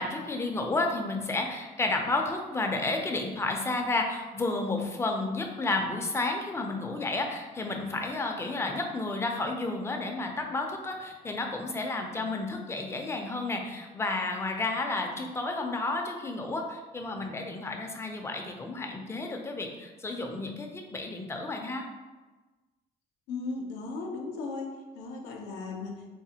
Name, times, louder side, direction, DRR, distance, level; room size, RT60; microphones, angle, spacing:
voice 1, 0.0-21.8, left 2 dB, 15° left, 3 dB, 0.4 m, -31 dB
voice 2, 23.3-26.1, left 3 dB, 85° left, 2 dB, 0.5 m, -37 dB
4.0 x 2.1 x 2.8 m, 1.2 s
cardioid pair, 110°, 17 cm